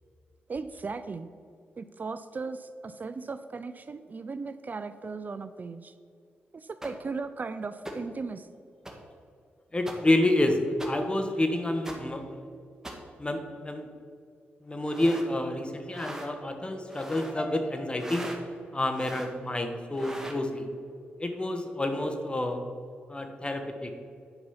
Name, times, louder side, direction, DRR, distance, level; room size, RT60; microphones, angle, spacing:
voice 1, 0.5-1.3 1.8-5.9 6.5-8.5, right 4 dB, 45° right, 12 dB, 0.4 m, -37 dB
sound 1, 6.8-6.9 7.8-7.9 8.8-8.9 9.9-10.0 10.8-10.9 11.8-12.0 12.8-12.9 14.8-15.3 15.9-16.3 16.9-17.3 18.0-18.4 18.9-19.3 19.9-20.4, right 1 dB, 15° right, 1.6 m, -40 dB
voice 2, 9.7-12.4 13.2-13.9 14.6-18.3 18.7-20.7 21.2-22.6 23.1-23.9, left 1 dB, 25° left, 6 dB, 1.3 m, -28 dB
9.8 x 5.3 x 5.6 m, 2.4 s
cardioid pair, 60°, 4 cm